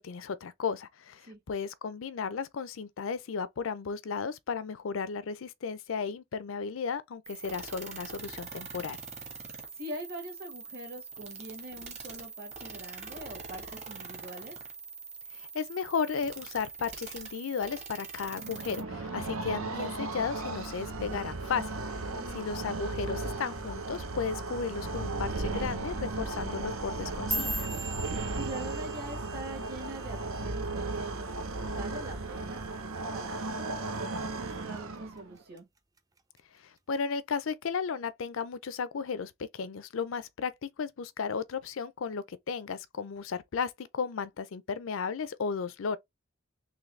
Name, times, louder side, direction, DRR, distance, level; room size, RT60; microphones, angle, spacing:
voice 1, 0.0-9.0 15.3-22.1 22.3-27.7 36.6-46.0, left 6 dB, 70° left, 0.5 m, -34 dB
sound 1, 7.2-18.8, right 5 dB, 35° right, 1.1 m, -44 dB
voice 2, 9.7-14.6 22.1-22.4 28.4-31.3 31.7-35.7, right 1 dB, 50° right, 1.6 m, -43 dB
sound 2, 18.4-35.4, right 2 dB, 85° right, 0.8 m, -35 dB
sound 3, 26.9-31.3 31.6-32.0 32.4-32.8 33.2-33.4 34.0-34.4 34.8-35.6 36.0-36.4 37.2-37.3, right 2 dB, 15° right, 0.4 m, -39 dB
3.9 x 3.0 x 3.2 m
head